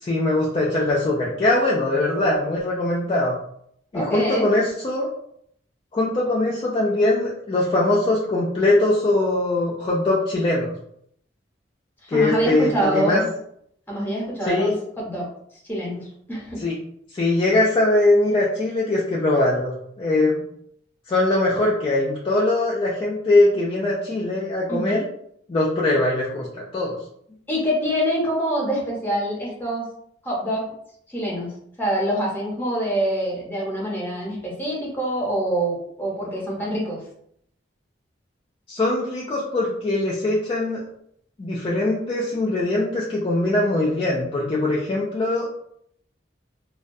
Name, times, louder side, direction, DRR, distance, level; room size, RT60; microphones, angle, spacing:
voice 1, 0.0-3.4 3.9-5.1 5.9-10.7 12.1-13.2 14.5-14.7 16.6-16.7 17.1-20.4 21.1-25.0 25.5-27.0 38.7-40.8 41.4-45.6, left 2 dB, 30° left, -5 dB, 0.4 m, -21 dB
voice 2, 3.9-4.5 12.0-13.3 13.9-15.3 15.6-16.6 24.7-25.0 27.5-29.9 30.2-30.7 31.1-31.5 31.8-37.0, right 1 dB, 10° left, -3 dB, 0.7 m, -25 dB
2.2 x 2.2 x 2.6 m, 0.70 s
head